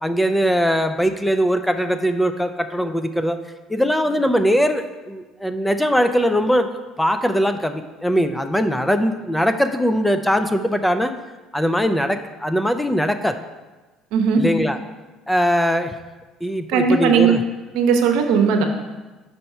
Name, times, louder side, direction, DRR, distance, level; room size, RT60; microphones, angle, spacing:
voice 1, 0.0-3.4 3.7-6.7 7.0-11.1 11.5-13.4 14.4-14.8 15.3-15.9 16.4-17.4, equal, 5° left, 8 dB, 0.4 m, -20 dB
voice 2, 14.1-14.4 16.7-17.4 17.7-18.7, right 6 dB, 80° right, 5 dB, 0.8 m, -17 dB
5.3 x 4.5 x 5.5 m, 1.2 s
cardioid pair, 100°, 0 cm